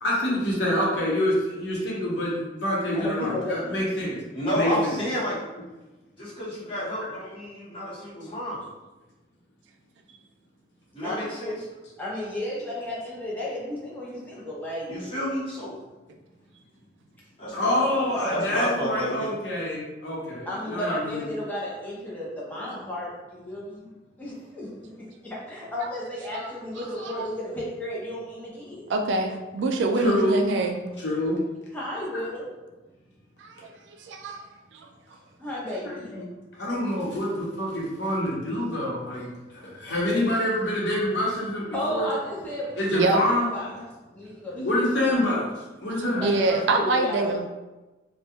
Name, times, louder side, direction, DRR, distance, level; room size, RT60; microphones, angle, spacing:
voice 1, 0.0-4.2 4.5-4.9 17.5-21.2 30.0-30.4 30.8-31.4 36.1-36.3 36.5-42.1 42.8-43.7 44.5-45.5 45.8-46.2, left 1 dB, 70° left, -4 dB, 0.8 m, -26 dB
voice 2, 2.9-3.8 4.6-4.8 11.0-11.3 12.0-14.9 20.5-23.9 24.2-28.9 31.7-32.5 35.4-36.1 41.7-43.8 44.1-45.3 46.2-47.4, left 1 dB, 10° left, -6 dB, 0.5 m, -33 dB
voice 3, 4.3-5.4 6.2-8.6 10.9-11.5 14.9-15.7 17.4-19.3, equal, 30° left, -10 dB, 1.0 m, -30 dB
voice 4, 25.8-26.4 27.0-27.1 28.9-30.7 33.4-34.4 34.7-34.9 42.9-43.2 46.0-47.4, right 2 dB, 80° right, 4 dB, 0.3 m, -26 dB
2.3 x 2.0 x 2.8 m, 1.1 s
head